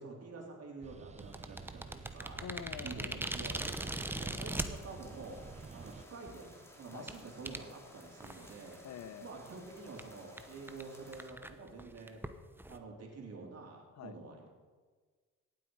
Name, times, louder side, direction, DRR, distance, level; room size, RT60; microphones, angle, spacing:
voice 1, 0.0-2.4 2.8-5.4 5.7-8.8 9.2-12.3 12.7-14.5, right 3 dB, 55° right, 0 dB, 3.5 m, -48 dB
sound 1, 0.8-6.0, right 5 dB, 25° right, 0.6 m, -51 dB
sound 2, 1.2-4.7 5.5-5.6 6.1-6.3 7.1-7.2 7.5-7.6 8.2-8.7 9.0-9.1 9.4-9.5 10.0-10.1 10.4-10.5 10.7-10.8 11.1-12.8, right 1 dB, 5° right, 0.9 m, -39 dB
voice 2, 2.4-3.2 6.9-7.1 8.8-9.3 14.0-14.2, left 8 dB, 65° left, 12 dB, 1.0 m, -46 dB
sound 3, 4.6-11.3, left 1 dB, 10° left, 2.5 m, -57 dB
17.5 x 8.2 x 4.8 m, 1.4 s
cardioid pair, 90°, 30 cm